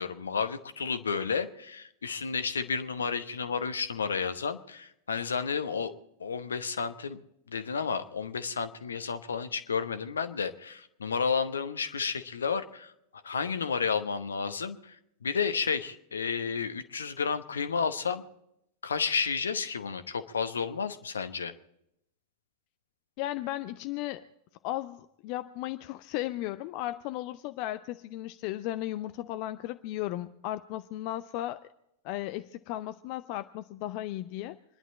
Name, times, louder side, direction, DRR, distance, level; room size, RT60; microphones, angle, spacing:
voice 1, 0.0-5.9 6.2-7.2 7.5-12.9 13.2-15.0 15.2-18.2 18.8-21.5, left 5 dB, 70° left, 11 dB, 1.0 m, -31 dB
voice 2, 23.2-24.2 24.6-31.6 32.0-34.6, left 15 dB, 45° left, 12 dB, 0.5 m, -35 dB
26.0 x 11.0 x 4.2 m, 0.78 s
figure-of-eight pair, 90°, 0 cm